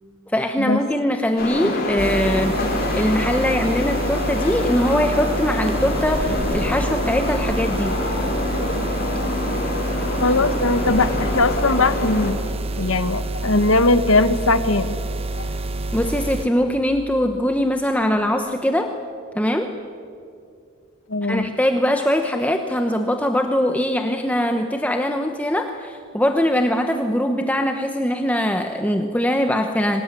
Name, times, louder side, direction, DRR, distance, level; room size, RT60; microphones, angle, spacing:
voice 1, 0.3-2.5 2.9-8.0 15.9-18.9 19.3-19.7 21.3-30.0, left 1 dB, 5° left, 4 dB, 1.0 m, -21 dB
sound 1, 1.4-12.3, left 2 dB, 45° left, 4.4 m, -26 dB
sound 2, 2.0-16.5, right 2 dB, 30° right, 1.0 m, -28 dB
voice 2, 10.2-12.4 12.8-15.0 21.1-21.5, left 2 dB, 75° left, 11 dB, 1.3 m, -19 dB
24.5 x 19.0 x 9.8 m, 2.4 s
head